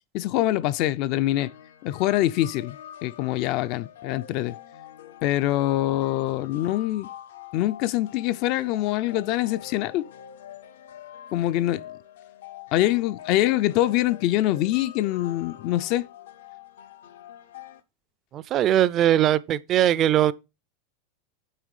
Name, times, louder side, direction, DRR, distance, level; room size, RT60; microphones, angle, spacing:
voice 1, 0.1-1.5 1.8-2.8 3.0-4.6 5.2-7.1 7.5-10.0 11.3-11.8 12.7-16.1, left 15 dB, 45° left, 0.4 m, -24 dB
sound 1, 1.4-17.8, left 10 dB, 85° left, 0.8 m, -45 dB
voice 2, 18.3-20.3, right 11 dB, 30° right, 0.4 m, -20 dB
8.8 x 3.1 x 6.4 m
supercardioid pair, 150°, 0 cm